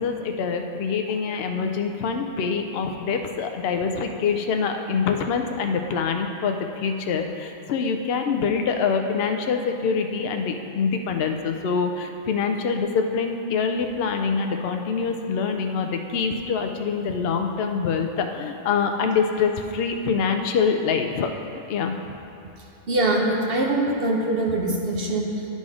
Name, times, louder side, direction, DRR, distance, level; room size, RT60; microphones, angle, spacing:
voice 1, 0.0-22.0, left 5 dB, 65° left, 5 dB, 0.6 m, -25 dB
voice 2, 22.9-25.5, right 2 dB, 45° right, -1 dB, 1.0 m, -23 dB
11.0 x 4.0 x 4.9 m, 3.0 s
omnidirectional pair, 1.5 m